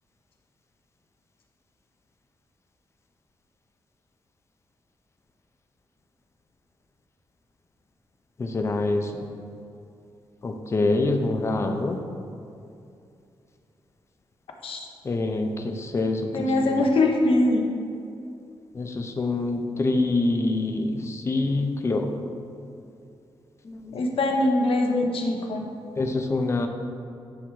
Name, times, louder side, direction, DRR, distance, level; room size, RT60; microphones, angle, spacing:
voice 1, 8.4-9.3 10.4-12.0 15.0-16.8 18.7-22.1 23.6-23.9 26.0-26.7, left 2 dB, 30° left, 5 dB, 0.6 m, -26 dB
voice 2, 16.3-17.7 23.9-25.6, left 2 dB, 75° left, 2 dB, 0.9 m, -22 dB
9.9 x 3.5 x 4.7 m, 2.6 s
wide cardioid pair, 165°, 9 cm